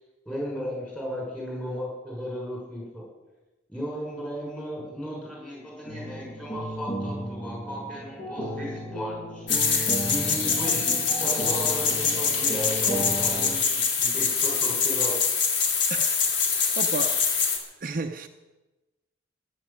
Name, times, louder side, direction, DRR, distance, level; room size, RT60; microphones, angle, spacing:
voice 1, 0.2-3.1 3.7-9.5 10.0-15.2, equal, 5° left, 6.5 m, -35 dB
sound 1, 5.9-13.6, right 1 dB, 45° left, 7.5 m, -34 dB
sound 2, 9.5-17.6, left 5 dB, 75° left, 2.5 m, -24 dB
voice 2, 15.9-17.3 17.8-18.3, right 3 dB, 45° right, 0.7 m, -34 dB
15.5 x 10.5 x 7.4 m
head